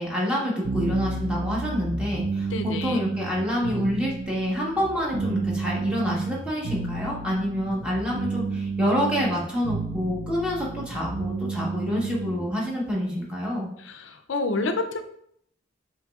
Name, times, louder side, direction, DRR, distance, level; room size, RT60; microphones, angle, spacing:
voice 1, 0.0-13.7, equal, 5° right, -5 dB, 1.2 m, -27 dB
sound 1, 0.6-12.5, right 3 dB, 30° right, 0.9 m, -31 dB
voice 2, 2.5-3.0 13.8-15.0, left 3 dB, 75° left, 7 dB, 0.5 m, -28 dB
7.4 x 3.0 x 2.4 m, 0.70 s
head